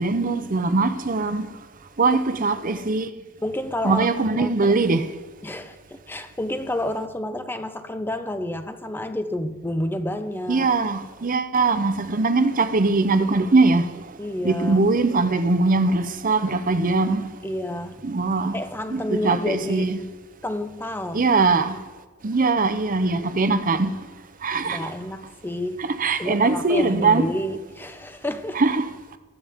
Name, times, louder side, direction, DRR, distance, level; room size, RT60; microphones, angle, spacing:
voice 1, 0.0-1.5 2.0-3.1 3.8-5.1 10.5-13.9 14.4-17.3 18.0-18.6 18.9-20.0 21.1-21.7 22.2-23.9 24.4-24.9 26.0-27.3 28.5-28.8, right 3 dB, 40° right, 0.8 m, -21 dB
voice 2, 3.4-4.1 4.3-4.8 5.4-10.7 14.2-14.8 17.4-18.0 18.4-20.0 20.4-21.3 24.7-25.9 26.2-28.6, left 1 dB, 10° left, 0.7 m, -29 dB
19.5 x 14.0 x 3.6 m
head